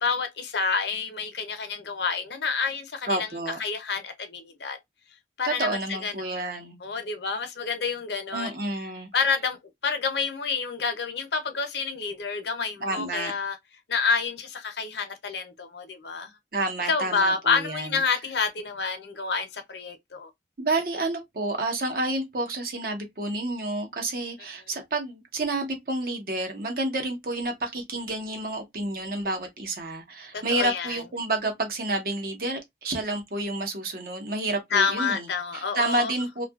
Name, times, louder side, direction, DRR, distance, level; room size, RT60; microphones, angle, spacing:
voice 1, 0.0-3.3 3.6-4.8 5.4-6.5 6.8-8.5 9.1-13.6 13.9-16.3 16.8-20.3 30.3-31.0 34.7-36.1, left 5 dB, 70° left, 0.6 m, -28 dB
voice 2, 3.1-3.6 5.4-6.8 8.3-9.1 12.8-13.3 16.5-17.9 20.6-35.3 35.5-36.5, right 2 dB, 50° right, 0.8 m, -29 dB
2.7 x 2.3 x 2.3 m
head